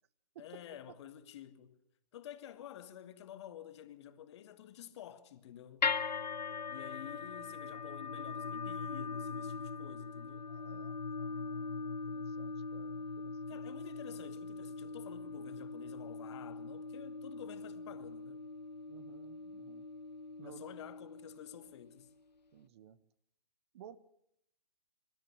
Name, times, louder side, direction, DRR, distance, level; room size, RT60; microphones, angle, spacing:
voice 1, 0.4-1.8 2.1-5.9 6.7-10.5 13.5-18.5 20.4-22.1, left 11 dB, 40° left, 1.7 m, -50 dB
sound 1, 5.8-22.0, left 4 dB, 90° left, 0.9 m, -41 dB
voice 2, 10.5-13.6 18.9-19.9 20.4-20.8 22.5-23.0 23.7-24.0, right 10 dB, 40° right, 1.1 m, -56 dB
24.5 x 13.0 x 9.8 m
hypercardioid pair, 140°, 21 cm